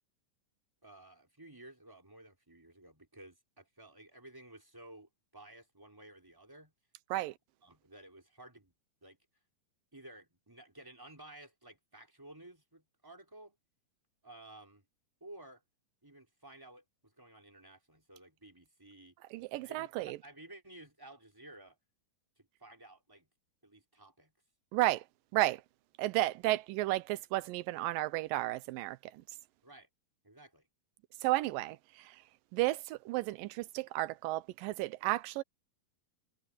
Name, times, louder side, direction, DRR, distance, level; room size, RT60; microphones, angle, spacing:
voice 1, 0.8-6.7 7.6-8.7 9.0-9.2 9.9-13.6 14.2-14.8 15.2-15.6 16.0-19.2 19.6-21.8 22.4-23.3 23.6-24.3 29.6-29.9 30.2-30.7, right 1 dB, 5° right, 4.4 m, -54 dB
voice 2, 19.3-20.2 24.7-25.0 25.3-25.6 26.0-29.2 31.2-32.2 32.5-35.4, right 17 dB, 90° right, 2.4 m, -33 dB
omnidirectional pair, 3.9 m